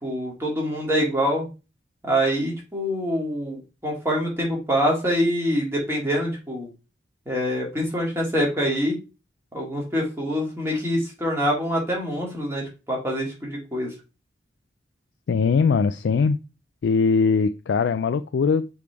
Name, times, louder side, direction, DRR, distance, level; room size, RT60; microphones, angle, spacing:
voice 1, 0.0-1.5 2.0-6.7 7.3-9.0 9.5-12.6 12.9-13.9, equal, 15° right, 2.1 m, -25 dB
voice 2, 15.3-16.4 16.8-18.7, left 5 dB, 70° left, 0.3 m, -21 dB
6.9 x 3.6 x 4.7 m
head